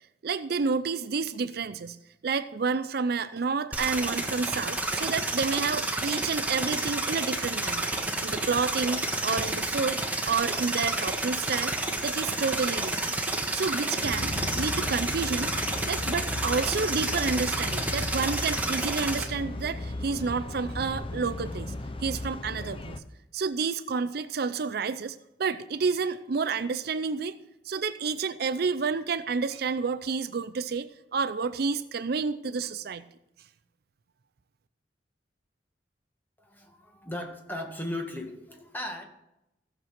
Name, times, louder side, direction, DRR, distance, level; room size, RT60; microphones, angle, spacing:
voice 1, 0.2-2.0 2.2-7.9 8.2-11.8 12.0-13.2 13.5-15.5 15.9-21.7 22.0-23.0 23.3-27.4 27.6-33.0, right 5 dB, 60° right, 13 dB, 0.5 m, -30 dB
sound 1, 3.7-19.2, right 2 dB, 10° right, 1.4 m, -30 dB
sound 2, 14.0-23.0, left 2 dB, 30° left, 0.7 m, -36 dB
voice 2, 36.4-39.0, left 1 dB, 10° left, 2 dB, 1.8 m, -37 dB
16.0 x 6.7 x 5.9 m, 0.87 s
head